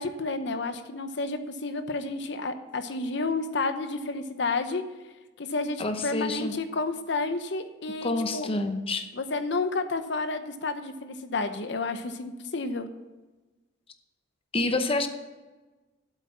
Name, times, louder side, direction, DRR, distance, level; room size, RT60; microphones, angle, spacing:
voice 1, 0.0-4.8 5.4-8.5 9.1-12.9, left 3 dB, 65° left, 10 dB, 0.9 m, -31 dB
voice 2, 5.8-6.5 8.0-9.1 14.5-15.1, left 2 dB, 30° left, 7 dB, 0.8 m, -28 dB
8.3 x 8.2 x 7.3 m, 1.2 s
head